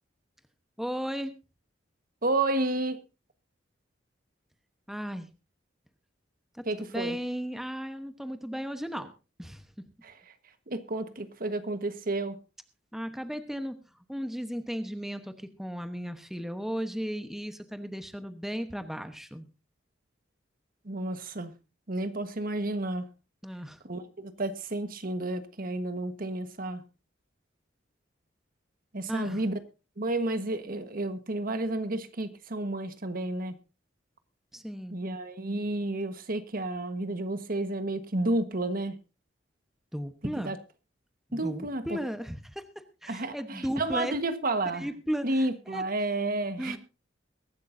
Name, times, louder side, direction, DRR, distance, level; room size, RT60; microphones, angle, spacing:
voice 1, 0.8-1.3 4.9-5.3 6.5-6.6 6.9-9.1 9.4-9.6 12.9-13.8 14.1-19.5 23.4-23.8 29.1-29.4 34.5-35.0 39.9-40.6 41.3-42.7 43.0-44.1 44.7-45.8 46.6-46.8, equal, ahead, 1.0 m, -35 dB
voice 2, 2.2-3.0 6.6-7.2 10.0-10.3 10.7-12.4 20.8-21.5 21.9-23.1 23.8-26.8 28.9-29.6 30.0-33.5 34.9-39.0 40.4-40.6 41.3-42.0 43.1-44.9 45.2-46.8, right 2 dB, 50° right, 1.4 m, -31 dB
22.5 x 11.5 x 2.6 m
head